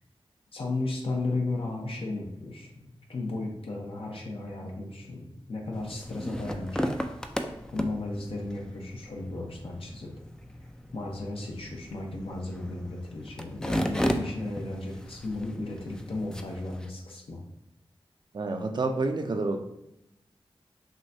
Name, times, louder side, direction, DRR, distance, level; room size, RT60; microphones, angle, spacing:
voice 1, 0.5-2.7 3.1-6.9 7.7-10.1 10.9-17.4, left 2 dB, 70° left, 0 dB, 0.9 m, -34 dB
sound 1, 5.7-16.9, equal, 5° left, 0.4 m, -35 dB
voice 2, 18.3-19.6, right 3 dB, 50° right, 5 dB, 0.5 m, -28 dB
6.2 x 2.2 x 2.7 m, 0.83 s
cardioid pair, 60°, 10 cm